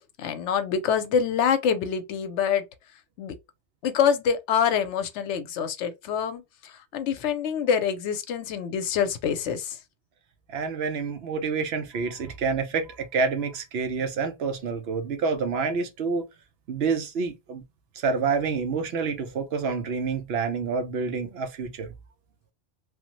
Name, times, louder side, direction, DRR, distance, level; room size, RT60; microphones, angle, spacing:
voice 1, 0.2-2.7 3.2-3.3 3.8-9.8, left 7 dB, 85° left, 0.9 m, -26 dB
voice 2, 10.5-16.3 16.7-17.6 18.0-21.9, right 5 dB, 65° right, 0.9 m, -28 dB
3.3 x 2.0 x 2.9 m
omnidirectional pair, 1.2 m